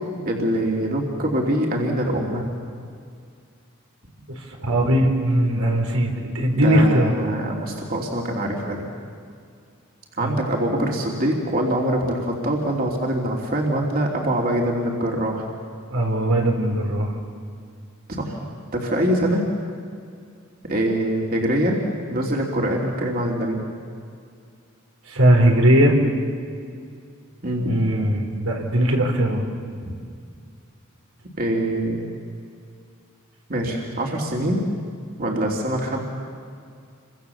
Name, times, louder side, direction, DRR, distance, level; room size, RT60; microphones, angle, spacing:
voice 1, 0.2-2.5 6.5-8.9 10.2-15.4 18.1-19.5 20.6-21.8 22.1-23.6 27.4-27.7 29.8-29.9 31.4-32.1 33.5-34.6 35.2-36.0, right 1 dB, 45° right, -1 dB, 3.1 m, -24 dB
voice 2, 4.6-7.1 10.2-10.4 15.9-17.1 25.1-26.0 27.7-29.4, right 1 dB, 80° right, 1 dB, 4.3 m, -19 dB
29.0 x 24.5 x 7.2 m, 2.3 s
head